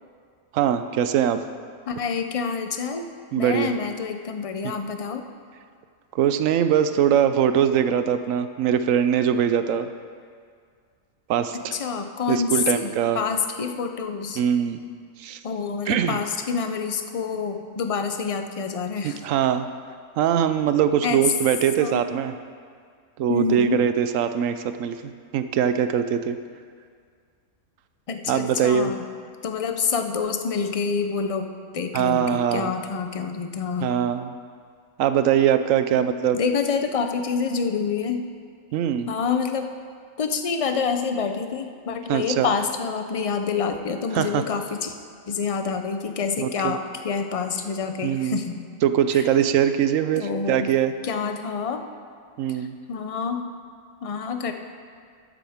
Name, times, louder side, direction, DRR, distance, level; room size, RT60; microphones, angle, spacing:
voice 1, 0.5-1.4 3.3-3.7 4.6-4.7 6.1-9.9 11.3-11.7 12.3-13.2 14.4-14.8 15.2-15.4 15.9-16.2 19.0-19.7 20.2-22.3 23.2-26.4 28.3-28.9 31.9-32.7 33.8-34.3 35.0-36.4 38.7-39.1 42.1-42.5 44.1-44.4 46.4-46.8 48.0-48.4 48.8-50.9 52.4-52.8, right 9 dB, 75° right, 10 dB, 1.0 m, -22 dB
voice 2, 1.9-3.1 3.3-5.2 11.7-14.4 15.4-19.2 21.0-21.2 21.8-22.0 23.3-23.8 28.1-29.0 29.4-31.5 31.7-33.9 35.9-38.3 39.1-39.7 40.2-45.0 45.3-48.6 49.1-49.2 50.2-50.7 51.0-51.8 52.5-53.4 54.0-54.5, left 5 dB, 50° left, 6 dB, 0.4 m, -27 dB
13.0 x 10.0 x 3.5 m, 2.1 s
omnidirectional pair, 1.4 m